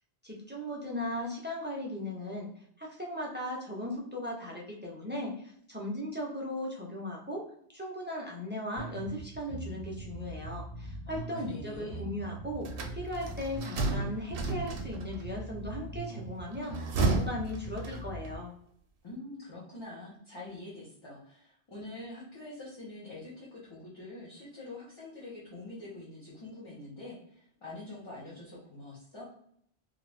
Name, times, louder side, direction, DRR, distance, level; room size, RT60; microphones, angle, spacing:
voice 1, 0.2-2.5 2.8-7.5 7.7-18.5, left 1 dB, 15° right, -3 dB, 0.4 m, -37 dB
sound 1, 8.8-18.4, right 3 dB, 55° left, 1.1 m, -42 dB
voice 2, 11.1-12.0 19.0-29.2, left 2 dB, 30° left, -8 dB, 0.8 m, -45 dB
sound 2, 12.6-15.2 16.5-18.3, right 3 dB, 65° right, 0.7 m, -32 dB
2.6 x 2.4 x 3.2 m, 0.67 s
omnidirectional pair, 1.1 m